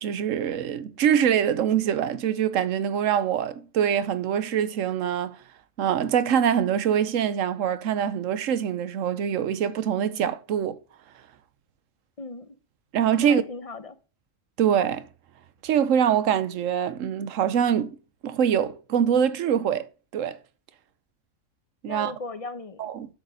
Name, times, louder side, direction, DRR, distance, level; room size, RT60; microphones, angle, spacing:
voice 1, 0.0-5.4 5.8-10.8 12.9-13.4 14.6-15.1 15.6-18.0 18.2-19.9 20.1-20.4 21.8-22.1 22.8-23.1, right 8 dB, 75° right, 1.1 m, -24 dB
voice 2, 12.2-12.6 13.2-14.0 21.9-22.8, left 3 dB, 35° left, 0.7 m, -37 dB
7.7 x 6.7 x 5.1 m
omnidirectional pair, 1.4 m